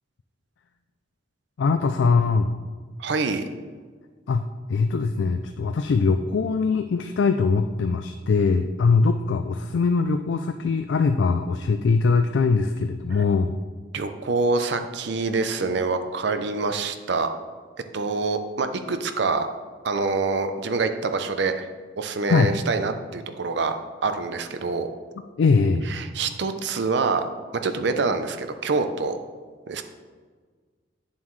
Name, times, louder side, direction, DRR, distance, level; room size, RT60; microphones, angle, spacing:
voice 1, 1.6-2.5 4.3-13.5 22.3-22.6 25.4-25.9, left 4 dB, 75° left, 7 dB, 0.4 m, -22 dB
voice 2, 3.0-3.4 13.9-17.3 17.9-19.5 19.8-21.7 22.0-24.9 25.9-27.3 27.6-29.2 29.7-29.8, right 4 dB, 65° right, 8 dB, 0.5 m, -26 dB
8.5 x 7.2 x 3.1 m, 1.5 s
head